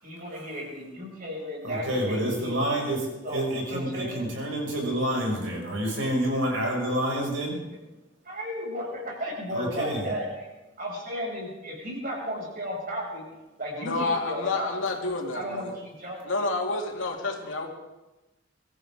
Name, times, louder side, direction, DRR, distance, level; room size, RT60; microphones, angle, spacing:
voice 1, 0.0-2.6 3.2-4.2 8.2-10.5 10.8-13.2 13.6-14.7 15.3-16.3, equal, 50° right, -2 dB, 6.5 m, -34 dB
voice 2, 1.6-7.6 9.5-10.0, right 1 dB, 85° right, -1 dB, 6.0 m, -28 dB
voice 3, 13.8-15.7 16.2-17.7, left 3 dB, 90° left, 1 dB, 2.5 m, -29 dB
24.5 x 14.5 x 3.7 m, 1.0 s
head